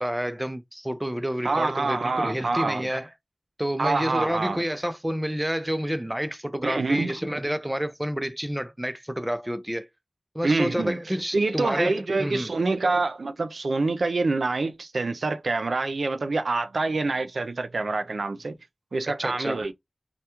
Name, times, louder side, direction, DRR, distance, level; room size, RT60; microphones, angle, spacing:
voice 1, 0.0-3.1 3.6-9.9 10.3-12.5 19.2-19.6, equal, 10° right, 0.4 m, -29 dB
voice 2, 1.4-2.9 3.8-4.6 6.6-7.2 10.4-11.0 11.3-18.6 18.9-19.7, right 3 dB, 80° right, 0.3 m, -26 dB
2.2 x 2.1 x 2.8 m
wide cardioid pair, 80°, 0 cm